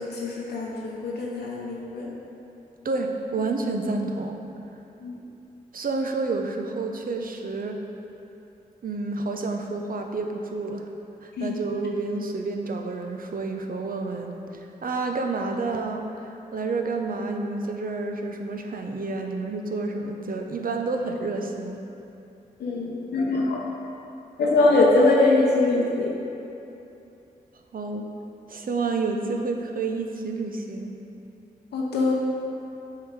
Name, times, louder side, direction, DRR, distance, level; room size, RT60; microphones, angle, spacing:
voice 1, 0.0-2.1 5.0-5.2 11.4-11.6 22.6-23.6 24.4-26.1 31.7-32.1, left 2 dB, 90° left, -3 dB, 0.7 m, -22 dB
voice 2, 2.8-4.4 5.7-7.8 8.8-10.9 11.2-21.8 27.7-28.1 28.5-31.0, right 3 dB, 60° right, 3 dB, 0.7 m, -29 dB
7.2 x 3.9 x 4.7 m, 2.8 s
cardioid pair, 45°, 17 cm